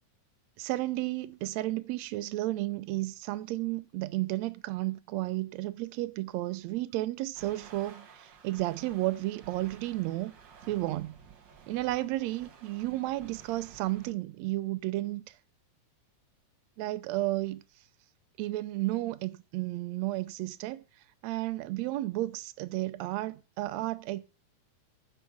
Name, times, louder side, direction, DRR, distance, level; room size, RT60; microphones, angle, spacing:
voice 1, 0.6-10.3 10.7-11.2 11.7-15.3 16.8-17.6 18.4-20.8 21.2-24.2, right 17 dB, 80° right, 1.5 m, -32 dB
sound 1, 7.3-14.1, right 6 dB, 60° right, 1.2 m, -53 dB
10.5 x 5.6 x 7.1 m
omnidirectional pair, 3.8 m